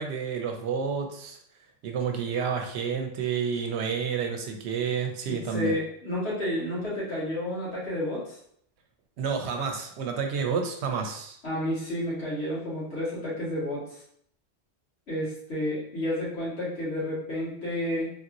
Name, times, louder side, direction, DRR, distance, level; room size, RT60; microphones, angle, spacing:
voice 1, 0.0-1.4 1.8-5.8 9.2-11.4, right 6 dB, 85° right, 4 dB, 0.8 m, -30 dB
voice 2, 5.3-8.4 11.4-14.0 15.1-18.1, left 1 dB, 80° left, -7 dB, 1.7 m, -31 dB
3.4 x 2.5 x 2.9 m, 0.67 s
omnidirectional pair, 1.1 m